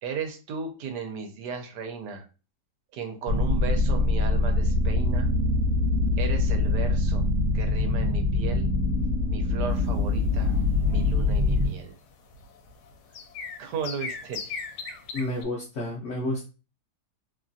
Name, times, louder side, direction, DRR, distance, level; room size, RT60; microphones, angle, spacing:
voice 1, 0.0-2.3 2.9-5.3 6.2-7.3 7.5-8.7 9.3-10.5 10.9-11.9 13.6-14.7, right 6 dB, 80° right, 4 dB, 1.2 m, -35 dB
sound 1, 3.3-11.7, left 2 dB, 55° right, 1.1 m, -24 dB
sound 2, 9.7-15.4, left 5 dB, 80° left, 1.1 m, -39 dB
voice 2, 15.1-16.4, left 1 dB, 60° left, -2 dB, 0.8 m, -30 dB
3.0 x 2.4 x 2.5 m, 0.33 s
omnidirectional pair, 1.8 m